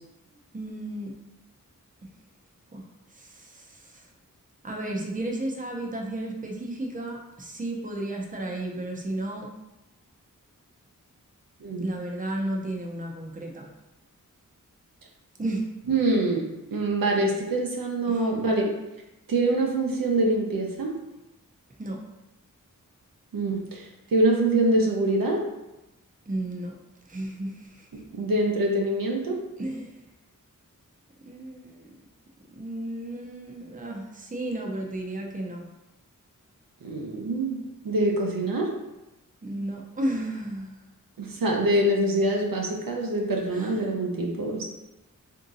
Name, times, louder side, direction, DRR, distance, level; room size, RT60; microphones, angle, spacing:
voice 1, 0.5-1.2 2.0-2.1 2.7-2.8 3.1-4.0 4.6-9.5 11.8-13.7 15.4-15.6 17.2-17.3 18.1-18.2 21.8-22.0 26.3-26.7 27.1-27.9 29.6-30.0 31.3-31.9 32.6-35.7 39.4-40.8 43.5-43.9, right 1 dB, 25° right, 0 dB, 0.6 m, -33 dB
voice 2, 15.9-16.4 16.7-18.7 19.3-20.9 23.3-25.4 27.9-29.4 36.8-37.6 37.8-38.7 41.2-44.6, right 1 dB, 85° right, 0 dB, 0.7 m, -25 dB
3.6 x 2.7 x 3.9 m, 0.98 s
wide cardioid pair, 80°, 33 cm